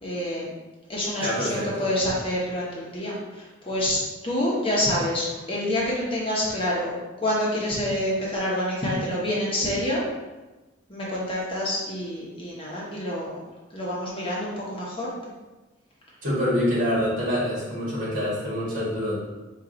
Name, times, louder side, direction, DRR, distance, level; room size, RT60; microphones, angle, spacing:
voice 1, 0.0-0.5 0.9-6.9 7.2-10.0 10.9-13.4 13.7-15.1, left 1 dB, 25° left, -6 dB, 0.9 m, -27 dB
voice 2, 1.2-1.8 16.2-19.2, equal, 45° right, -7 dB, 1.5 m, -26 dB
4.5 x 2.4 x 3.8 m, 1.1 s
head